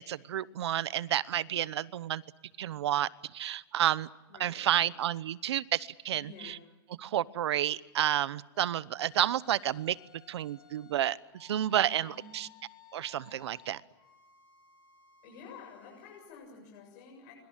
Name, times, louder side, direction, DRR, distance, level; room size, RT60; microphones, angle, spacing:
voice 1, 0.0-2.2 2.6-4.1 4.4-6.6 7.0-10.0 10.3-12.5 12.9-13.8, right 11 dB, 85° right, 19 dB, 1.0 m, -30 dB
voice 2, 4.3-4.9 6.1-6.6 11.9-12.3 15.2-17.3, left 6 dB, 45° left, -1 dB, 7.7 m, -50 dB
sound 1, 8.5-16.3, left 10 dB, 20° left, 7.8 m, -58 dB
25.0 x 24.5 x 7.5 m, 1.1 s
supercardioid pair, 165°, 14 cm